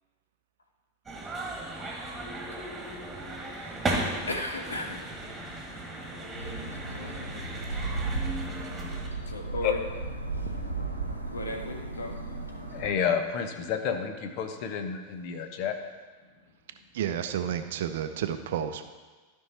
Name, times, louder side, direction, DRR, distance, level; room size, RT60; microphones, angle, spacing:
sound 1, 1.1-9.1, right 2 dB, 15° right, 2.0 m, -36 dB
voice 1, 4.0-5.1 5.9-7.3 9.2-9.8 11.3-12.2 12.6-12.7, left 1 dB, 75° left, 3 dB, 1.2 m, -37 dB
sound 2, 6.3-12.9, right 3 dB, 90° right, 1.1 m, -35 dB
voice 2, 12.7-15.8, left 7 dB, 45° left, 6 dB, 1.0 m, -30 dB
voice 3, 16.9-18.8, right 9 dB, 55° right, 9 dB, 0.6 m, -31 dB
13.0 x 5.5 x 4.4 m, 1.4 s
figure-of-eight pair, 90°, 0 cm